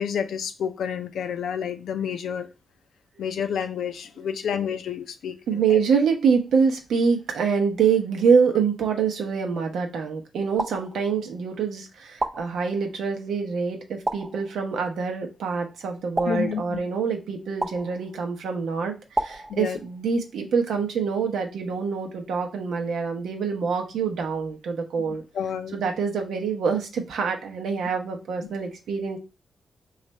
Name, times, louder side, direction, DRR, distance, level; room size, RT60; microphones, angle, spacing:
voice 1, 0.0-2.5 3.2-5.8 16.3-16.8 19.5-19.8 25.3-25.8, left 7 dB, 85° left, 9 dB, 0.4 m, -29 dB
voice 2, 5.5-25.2 25.7-29.2, right 6 dB, 85° right, 3 dB, 0.8 m, -25 dB
sound 1, 10.6-11.5 12.2-13.1 14.1-14.9 16.2-17.1 17.6-18.4 19.2-20.2, right 2 dB, 30° right, 0.5 m, -33 dB
3.2 x 2.4 x 4.1 m, 0.29 s
cardioid pair, 95°, 0 cm